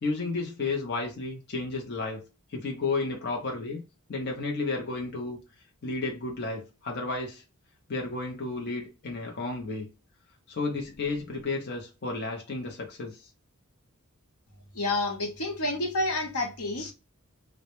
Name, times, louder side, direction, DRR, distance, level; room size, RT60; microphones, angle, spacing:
voice 1, 0.0-2.2 2.5-3.8 4.1-5.4 5.8-7.4 7.9-9.9 10.5-13.3, left 3 dB, 45° left, 0.6 m, -32 dB
voice 2, 14.7-16.9, left 2 dB, 85° left, 0.8 m, -29 dB
2.1 x 2.0 x 2.8 m
head